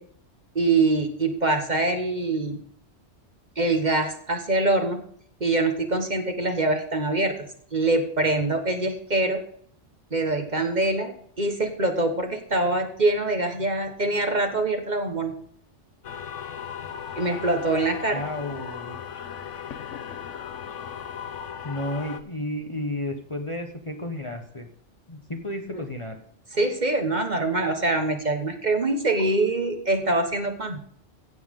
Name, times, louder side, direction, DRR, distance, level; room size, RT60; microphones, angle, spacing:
voice 1, 0.5-2.6 3.6-5.0 5.4-7.3 7.7-9.4 10.1-11.1 11.4-15.4 17.2-18.2 25.7-25.8 26.5-30.8, right 2 dB, 40° right, 4 dB, 1.4 m, -24 dB
sound 1, 16.0-22.2, left 8 dB, 85° left, 1.1 m, -37 dB
voice 2, 18.1-19.3 21.6-24.7 25.1-26.2, left 1 dB, 25° left, 4 dB, 1.2 m, -32 dB
16.0 x 7.1 x 3.7 m, 0.62 s
omnidirectional pair, 1.2 m